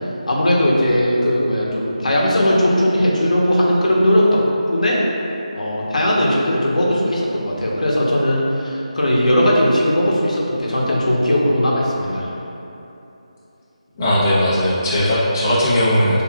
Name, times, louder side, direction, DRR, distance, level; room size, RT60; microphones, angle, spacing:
voice 1, 0.3-4.4 4.7-5.0 5.5-12.3, equal, 80° left, -4 dB, 1.0 m, -18 dB
voice 2, 14.0-16.2, equal, 25° left, -11 dB, 0.9 m, -17 dB
6.0 x 3.6 x 2.4 m, 3.0 s
figure-of-eight pair, 170°, 4 cm